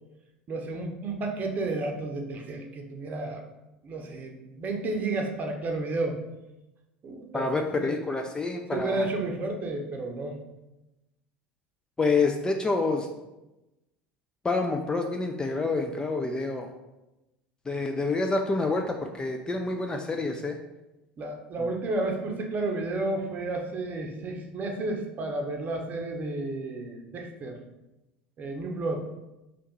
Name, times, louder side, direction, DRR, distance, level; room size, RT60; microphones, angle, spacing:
voice 1, 0.5-3.4 3.8-6.2 7.0-7.9 8.7-10.4 21.2-27.6 28.4-29.1, right 2 dB, 30° right, 2 dB, 0.7 m, -32 dB
voice 2, 7.3-9.1 12.0-13.1 14.4-16.7 17.7-20.6, left 3 dB, 15° left, 3 dB, 0.3 m, -27 dB
3.5 x 2.8 x 4.1 m, 0.98 s
figure-of-eight pair, 70°, 5 cm